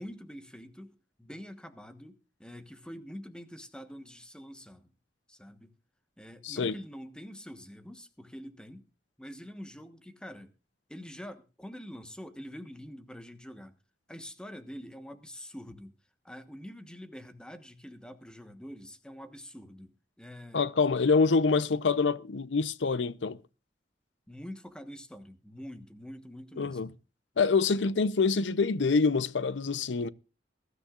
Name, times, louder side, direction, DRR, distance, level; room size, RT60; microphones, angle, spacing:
voice 1, 0.0-4.9 5.3-5.7 6.2-8.8 9.2-10.5 10.9-13.7 14.1-15.9 16.2-20.6 24.3-27.0 27.7-27.9, equal, 5° left, 1.2 m, -45 dB
voice 2, 6.4-6.7 20.5-23.4 26.6-26.9 27.4-30.1, left 4 dB, 90° left, 0.7 m, -26 dB
21.5 x 13.0 x 2.5 m
head